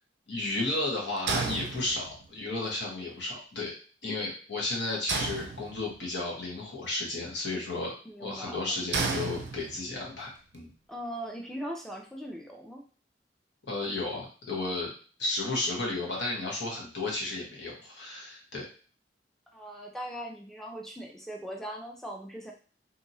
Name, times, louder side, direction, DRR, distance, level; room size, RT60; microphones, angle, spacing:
voice 1, 0.3-3.7 4.0-10.7 13.7-14.9 15.2-18.7, left 2 dB, 75° left, -3 dB, 1.1 m, -33 dB
sound 1, 1.3-2.4 5.1-6.1 8.9-10.0, right 4 dB, 65° right, 0.4 m, -32 dB
voice 2, 8.1-8.6 10.9-12.8 19.5-22.5, equal, ahead, 0 dB, 0.5 m, -39 dB
2.9 x 2.7 x 2.7 m, 0.40 s
head